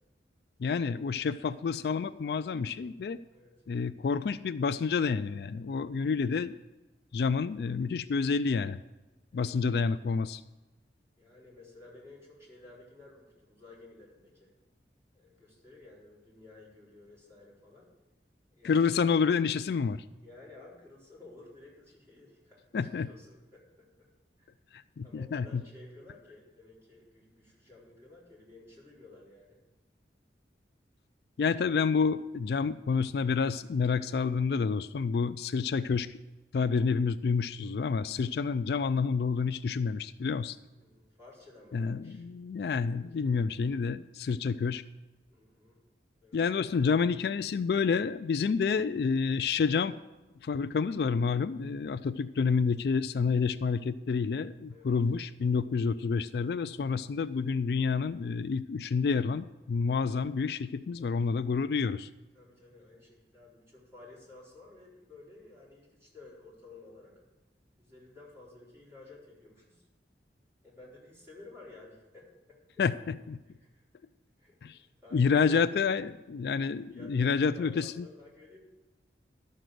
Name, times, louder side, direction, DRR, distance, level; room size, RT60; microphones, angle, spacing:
voice 1, 0.6-3.2 3.7-6.6 7.1-8.8 9.3-10.4 18.6-20.0 22.7-23.1 24.7-25.6 31.4-36.2 36.5-40.6 41.7-44.8 46.3-50.0 50.4-62.1 72.8-73.4 74.6-74.8 75.1-78.1, left 5 dB, 60° left, 13 dB, 0.3 m, -29 dB
voice 2, 9.3-9.8 11.2-14.5 15.1-17.9 18.5-19.0 20.2-24.1 24.4-24.5 25.0-29.6 40.8-42.2 43.1-43.4 44.5-44.8 45.3-45.8 46.2-46.4 54.7-55.0 61.0-61.2 62.3-67.1 67.8-69.8 70.6-72.8 73.6-73.8 74.4-75.6 76.9-78.6, left 2 dB, 15° right, -6 dB, 4.2 m, -54 dB
12.0 x 6.6 x 7.6 m, 1.1 s
head